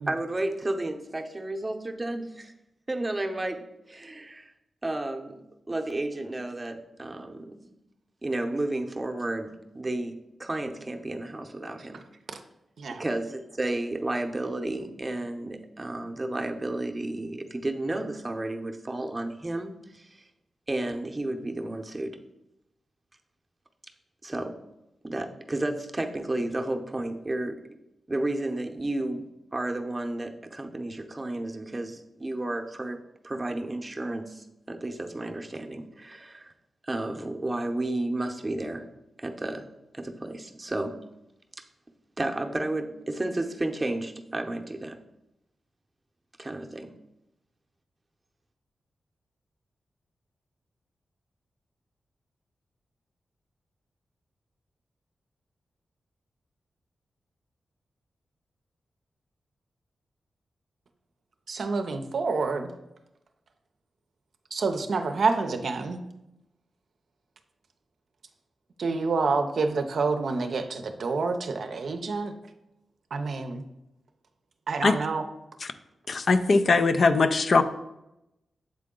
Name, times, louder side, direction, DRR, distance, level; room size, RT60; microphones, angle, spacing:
voice 1, 0.1-2.5 2.9-4.5 4.8-7.6 8.2-12.0 13.0-20.2 20.7-22.2 24.2-24.6 25.0-27.6 28.1-36.5 36.8-38.9 39.2-39.7 39.9-41.0 42.2-45.0 46.4-46.9, right 2 dB, 25° right, 5 dB, 0.7 m, -32 dB
voice 2, 61.5-62.7 64.5-66.0 68.8-72.3 73.1-73.6 74.7-75.2, right 4 dB, 70° right, 6 dB, 0.6 m, -28 dB
voice 3, 76.1-77.6, left 3 dB, 60° left, 10 dB, 0.4 m, -21 dB
7.5 x 3.7 x 3.7 m, 0.90 s
cardioid pair, 55°, 0 cm